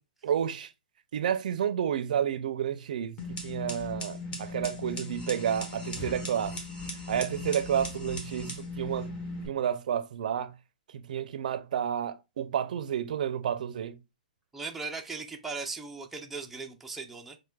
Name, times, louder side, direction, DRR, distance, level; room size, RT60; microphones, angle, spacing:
voice 1, 0.2-0.7 1.1-6.5 7.1-9.1 9.5-10.5 10.9-14.0, right 9 dB, 65° right, 0.5 m, -30 dB
sound 1, 3.2-9.5, left 1 dB, 20° left, 1.1 m, -38 dB
voice 2, 14.5-17.4, right 4 dB, 5° right, 0.4 m, -38 dB
6.3 x 2.2 x 2.3 m
hypercardioid pair, 125°, 5 cm